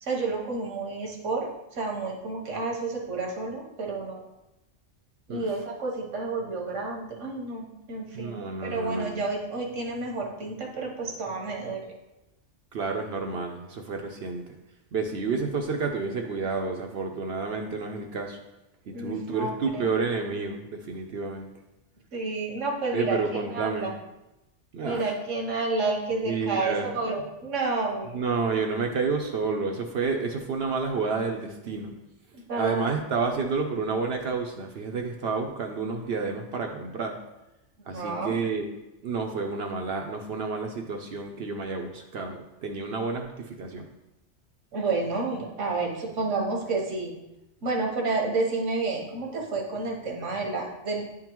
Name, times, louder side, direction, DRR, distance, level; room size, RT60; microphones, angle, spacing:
voice 1, 0.0-4.2 5.3-11.9 18.9-19.8 22.1-23.9 24.8-28.1 32.5-32.9 37.9-38.4 44.7-47.1 47.6-51.0, right 3 dB, 90° right, 0 dB, 1.4 m, -30 dB
voice 2, 8.1-9.2 12.7-14.4 14.9-18.4 18.9-21.5 22.9-23.9 24.7-25.1 26.2-26.9 28.1-31.9 32.6-37.2 37.9-38.7 39.0-43.9, right 4 dB, 65° right, 3 dB, 0.8 m, -30 dB
9.8 x 3.7 x 3.0 m, 0.96 s
omnidirectional pair, 1.2 m